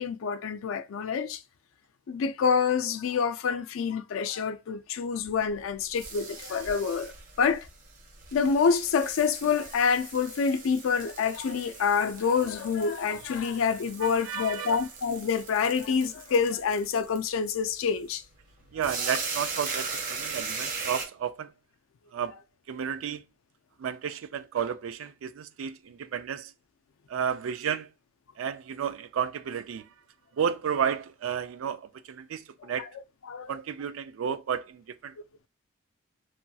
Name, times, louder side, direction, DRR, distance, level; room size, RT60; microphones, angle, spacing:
voice 1, 0.0-1.4 2.1-7.7 8.3-18.2 33.3-33.6, left 6 dB, 90° left, 0.4 m, -27 dB
sound 1, 5.2-21.0, right 4 dB, 45° right, 0.7 m, -39 dB
voice 2, 14.0-14.8 18.7-21.5 22.1-22.4 22.7-23.2 23.8-26.5 27.1-27.9 28.4-29.9 30.3-32.9 33.5-35.1, right 7 dB, 85° right, 0.3 m, -32 dB
3.1 x 2.3 x 2.6 m
head